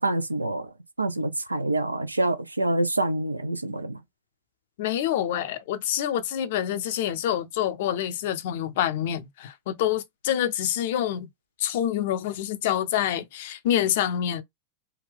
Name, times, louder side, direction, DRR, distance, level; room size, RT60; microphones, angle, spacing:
voice 1, 0.0-4.0, right 2 dB, 85° right, 0.4 m, -27 dB
voice 2, 4.8-11.3 11.6-14.4, left 11 dB, 55° left, 0.5 m, -27 dB
3.4 x 2.2 x 3.4 m
figure-of-eight pair, 90°, 0 cm